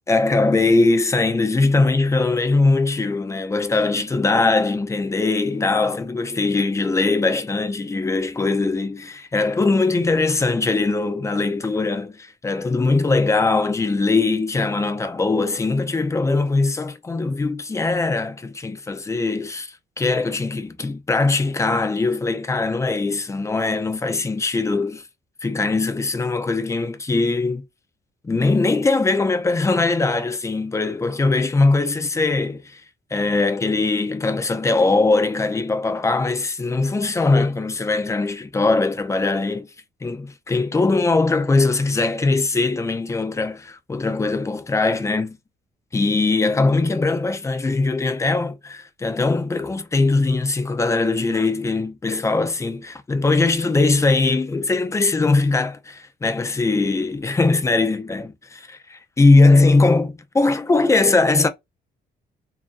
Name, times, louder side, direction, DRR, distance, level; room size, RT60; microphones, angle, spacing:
voice 1, 0.1-25.0 25.4-27.6 28.2-32.8 33.1-39.7 40.0-45.4 45.9-58.3 58.9-61.5, left 3 dB, 15° left, 0.5 m, -20 dB
2.7 x 2.6 x 2.4 m
cardioid pair, 105°, 17 cm